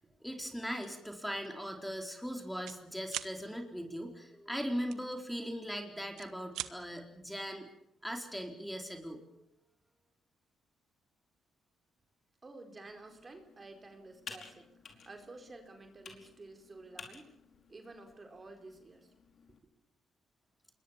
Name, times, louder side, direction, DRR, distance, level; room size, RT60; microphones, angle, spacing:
voice 1, 0.2-7.7 8.0-9.5, equal, ahead, 3 dB, 4.3 m, -39 dB
sound 1, 0.8-1.0 1.4-1.6 1.9-2.8 3.1-3.3 4.9-5.7 6.0-6.7, right 13 dB, 90° right, 1.2 m, -41 dB
voice 2, 12.4-17.2 17.7-19.1, right 2 dB, 30° right, 5 dB, 4.6 m, -51 dB
Computer keyboard, 12.8-19.6, left 5 dB, 60° left, 5.0 m, -54 dB
27.0 x 22.0 x 7.4 m, 0.73 s
cardioid pair, 85°, 0 cm